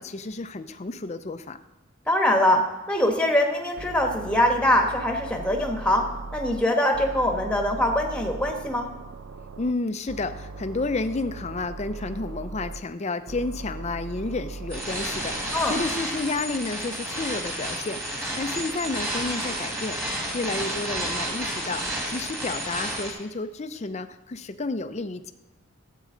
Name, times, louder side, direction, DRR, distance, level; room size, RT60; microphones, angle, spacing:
voice 1, 0.0-1.6 9.6-25.3, left 3 dB, 30° left, 10 dB, 0.5 m, -31 dB
voice 2, 2.1-2.6 2.9-6.0 6.3-8.9 15.5-15.7, left 1 dB, 5° left, 2 dB, 1.2 m, -23 dB
sound 1, 3.8-6.6 6.9-9.7 10.1-12.8 13.3-15.9, right 3 dB, 75° right, 0.6 m, -39 dB
sound 2, 14.7-23.1, right 1 dB, 10° right, 1.9 m, -31 dB
12.5 x 8.4 x 3.8 m, 1.1 s
head